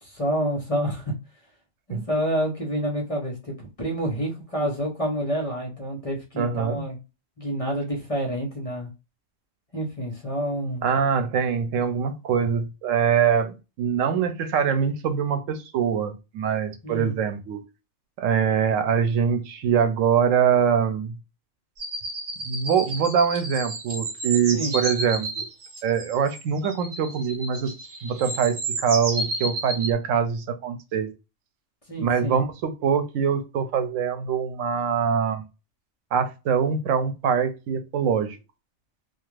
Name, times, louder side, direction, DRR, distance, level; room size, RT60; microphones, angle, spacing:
voice 1, 0.0-1.1 1.9-7.0 7.4-8.9 9.7-10.8 16.8-17.1 24.5-24.7 31.9-32.4, equal, 35° left, 0.7 m, -28 dB
voice 2, 6.4-6.9 10.8-17.6 18.2-21.1 22.4-25.4 25.8-27.7 28.0-31.1 32.0-35.5 36.1-38.4, right 7 dB, 90° right, 1.0 m, -24 dB
sound 1, 21.8-29.9, right 2 dB, 45° right, 0.8 m, -32 dB
2.4 x 2.4 x 3.1 m
omnidirectional pair, 1.3 m